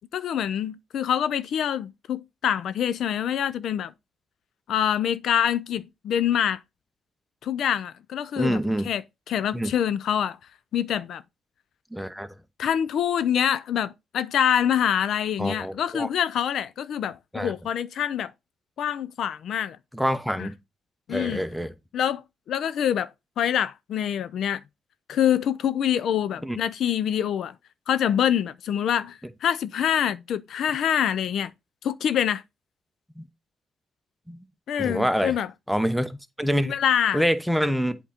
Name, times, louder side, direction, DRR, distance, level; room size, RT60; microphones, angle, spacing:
voice 1, 0.1-3.9 4.7-6.6 7.4-8.6 8.8-9.0 9.3-10.4 10.7-11.2 12.6-18.3 18.8-19.8 20.4-20.5 21.1-21.4 21.9-22.2 22.5-23.1 23.4-24.6 25.1-27.5 27.9-31.5 31.8-32.4 34.7-35.5 36.7-37.2, left 9 dB, 70° left, 0.4 m, -25 dB
voice 2, 8.4-8.9 9.5-9.7 11.9-12.3 15.4-16.1 17.3-17.5 19.9-20.5 21.1-21.7 26.4-26.6 33.2-33.3 34.3-34.4 34.8-35.3 35.7-36.7 37.1-38.0, equal, ahead, 0.8 m, -26 dB
8.1 x 3.8 x 4.2 m
cardioid pair, 90°, 0 cm